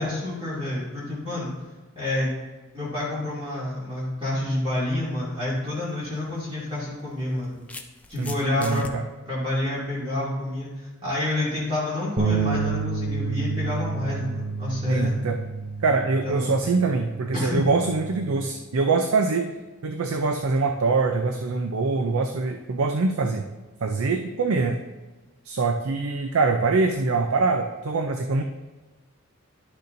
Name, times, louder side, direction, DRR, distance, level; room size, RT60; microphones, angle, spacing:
voice 1, 0.0-1.5 2.0-2.3 2.7-7.6 8.1-8.9 9.2-15.1 16.2-16.5 17.3-17.6, left 1 dB, 25° right, -8 dB, 2.5 m, -28 dB
sound 1, 5.7-5.9 7.0-8.9, left 2 dB, 5° left, 0.4 m, -41 dB
voice 2, 8.2-9.0 14.9-15.4 15.8-19.5 19.8-23.4 23.8-24.8 25.4-28.4, right 3 dB, 70° right, 5 dB, 0.5 m, -24 dB
sound 2, 12.2-18.4, right 4 dB, 40° right, 0.8 m, -30 dB
11.5 x 6.6 x 2.6 m, 1.2 s
head